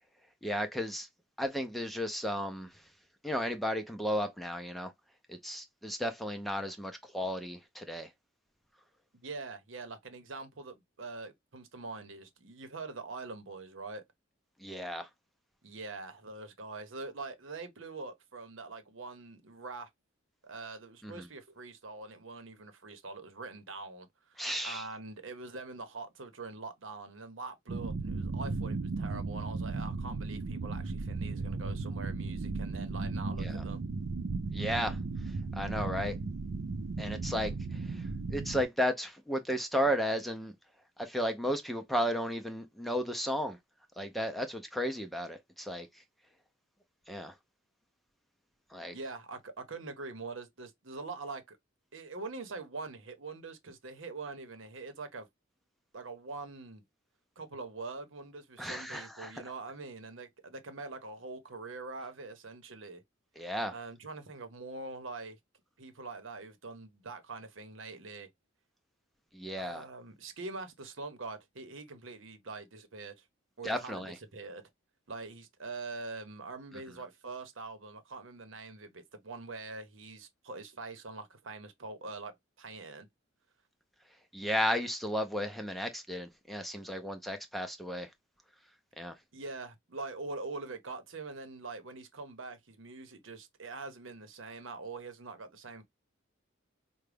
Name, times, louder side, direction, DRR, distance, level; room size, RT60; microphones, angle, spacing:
voice 1, 0.4-1.1 1.4-2.7 3.2-4.9 5.3-8.1 14.6-15.1 21.0-21.2 24.4-24.9 33.4-33.6 34.5-35.0 35.3-36.2 37.0-40.5 41.0-43.6 44.0-45.9 47.1-47.3 48.7-49.0 58.6-59.3 63.4-63.7 69.3-69.8 73.6-74.2 84.3-88.1 89.0-89.2, equal, ahead, 0.5 m, -34 dB
voice 2, 9.2-14.0 15.6-19.9 20.4-33.8 48.9-51.6 51.9-55.3 55.9-56.8 57.4-63.0 63.7-65.4 65.8-68.3 69.6-73.2 73.6-74.6 75.1-83.1 89.3-95.8, right 3 dB, 75° right, 0.9 m, -44 dB
sound 1, 27.7-38.6, right 3 dB, 55° right, 0.4 m, -36 dB
4.8 x 2.2 x 3.3 m
head